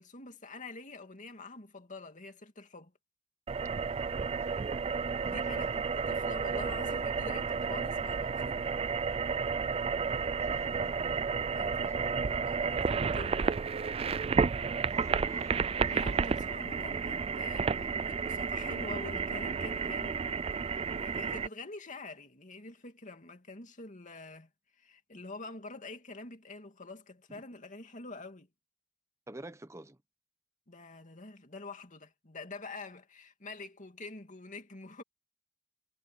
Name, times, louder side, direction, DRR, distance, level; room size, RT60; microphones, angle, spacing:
voice 1, 0.0-2.9 5.2-8.6 11.5-13.6 15.9-24.5 24.8-28.5 30.7-35.0, left 3 dB, 40° left, 2.6 m, -46 dB
sound 1, 3.5-21.5, right 5 dB, 30° right, 0.4 m, -32 dB
voice 2, 3.8-4.7 5.2-5.7 8.2-8.4 9.7-12.4 14.9-16.4 27.3-27.4 29.3-30.0, right 1 dB, 15° right, 1.1 m, -52 dB
head